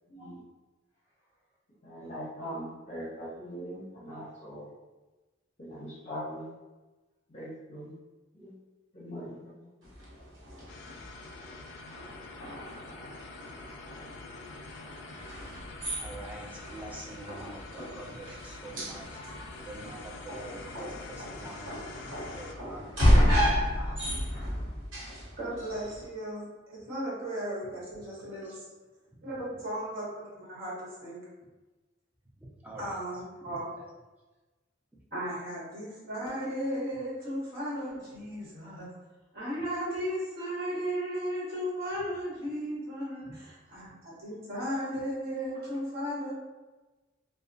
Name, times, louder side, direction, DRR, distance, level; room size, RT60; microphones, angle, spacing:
voice 1, 0.1-0.4 1.8-4.7 5.6-6.5 7.3-7.9 8.3-8.5 8.9-9.7, equal, 35° left, -9 dB, 0.7 m, -41 dB
sound 1, 9.8-26.1, equal, 75° right, 1.0 m, -32 dB
sound 2, 10.7-22.5, left 3 dB, 65° left, 0.3 m, -46 dB
voice 2, 16.0-24.0 26.8-26.9 28.2-28.5 32.4-33.0 33.4-33.6 43.2-43.4, right 1 dB, 10° right, -3 dB, 0.4 m, -46 dB
voice 3, 25.4-28.6 29.2-31.2 32.8-33.7 35.1-38.9 39.3-46.3, equal, 50° right, -8 dB, 1.1 m, -35 dB
2.7 x 2.0 x 2.6 m, 1.2 s
head